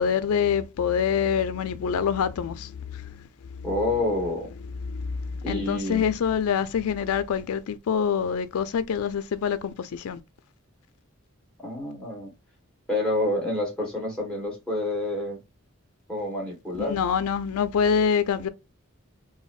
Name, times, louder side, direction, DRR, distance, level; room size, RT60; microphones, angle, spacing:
voice 1, 0.0-3.2 3.6-3.7 4.9-10.2 16.8-18.5, left 7 dB, 80° left, 0.4 m, -26 dB
voice 2, 3.6-4.5 5.4-6.0 11.6-12.3 12.9-15.4 16.1-17.0, left 1 dB, 5° left, 1.3 m, -28 dB
3.9 x 2.1 x 2.4 m
head